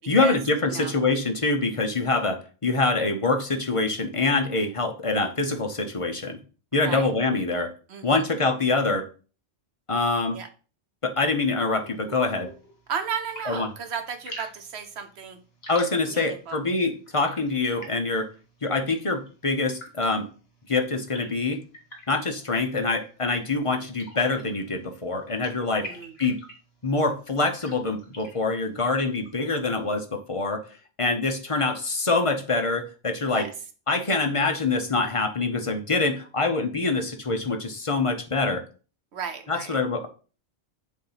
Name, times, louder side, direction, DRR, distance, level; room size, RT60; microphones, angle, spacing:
voice 1, 0.1-6.4 6.7-7.7 8.0-9.1 9.9-10.4 11.0-12.5 13.5-13.7 15.7-18.3 18.6-20.3 20.7-21.6 22.1-25.9 26.2-26.4 26.8-30.6 31.0-33.5 33.9-38.6 39.5-40.1, left 3 dB, 35° left, 5 dB, 0.8 m, -25 dB
voice 2, 7.9-8.2 10.3-10.5 12.9-15.4 16.0-16.6 25.8-26.1 33.2-33.5 34.1-34.3 39.1-39.8, right 6 dB, 75° right, 8 dB, 1.2 m, -34 dB
sound 1, 11.7-29.9, equal, 65° left, 1.7 m, -48 dB
7.3 x 2.7 x 5.6 m, 0.37 s
omnidirectional pair, 1.1 m